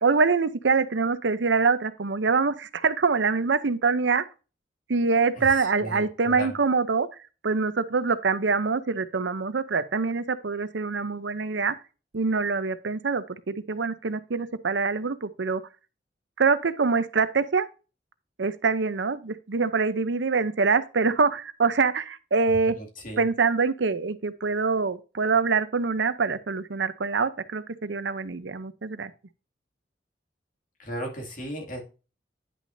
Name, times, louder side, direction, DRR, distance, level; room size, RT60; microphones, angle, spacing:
voice 1, 0.0-4.2 4.9-7.1 7.4-11.7 12.1-15.6 16.4-17.7 18.4-22.8 23.2-29.1, right 4 dB, 80° right, 0.7 m, -25 dB
voice 2, 5.3-6.6 22.6-23.2 30.8-31.8, right 1 dB, 50° left, 2.5 m, -36 dB
10.5 x 6.1 x 2.7 m
head